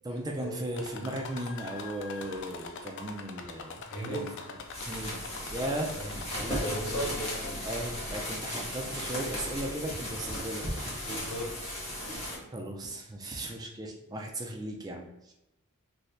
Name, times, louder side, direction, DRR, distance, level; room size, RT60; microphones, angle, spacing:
voice 1, 0.0-4.3 4.5-4.6 4.9-5.2 5.5-11.1 12.5-15.3, right 1 dB, 15° right, 0 dB, 0.4 m, -37 dB
sound 1, 0.7-7.8 8.3-8.9 9.7-9.8 10.2-10.3, left 4 dB, 55° left, 0.4 m, -44 dB
voice 2, 3.9-4.4 5.9-6.1 6.6-7.3 11.0-12.4, right 1 dB, 80° left, -2 dB, 1.1 m, -37 dB
sound 2, 4.7-12.4, left 1 dB, 30° left, 1.0 m, -36 dB
2.7 x 2.6 x 3.3 m, 0.93 s
head